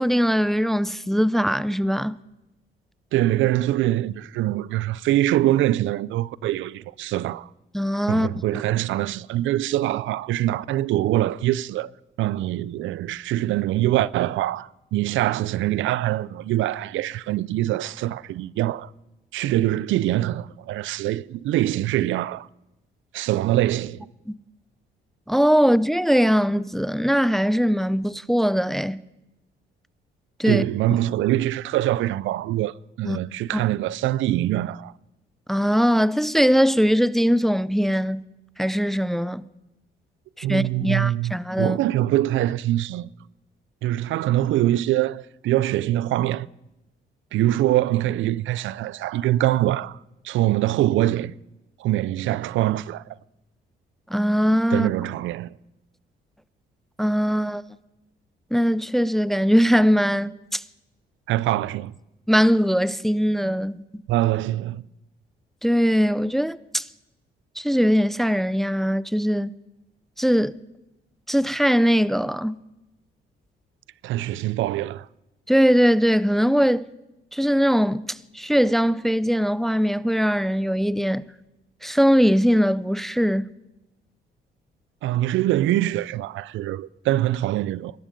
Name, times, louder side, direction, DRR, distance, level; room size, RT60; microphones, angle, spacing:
voice 1, 0.0-2.1 7.7-8.3 24.3-24.4 25.3-29.0 30.4-30.6 33.0-33.2 35.5-38.2 38.6-39.4 40.4-41.8 54.1-54.9 57.0-57.6 58.5-60.6 62.3-64.0 65.6-66.9 67.6-69.5 70.2-70.6 71.3-72.6 75.5-76.9 77.3-81.2 81.8-83.5, equal, ahead, 0.4 m, -21 dB
voice 2, 3.1-7.5 8.1-11.9 12.2-18.9 19.3-22.5 23.1-24.1 30.5-34.9 40.4-43.1 43.8-46.5 47.3-50.0 50.2-51.3 51.8-53.0 54.7-55.5 61.3-61.9 64.1-64.8 74.0-75.1 85.0-87.9, right 14 dB, 80° right, 0.4 m, -24 dB
20.0 x 12.0 x 5.2 m
cardioid pair, 90°, 20 cm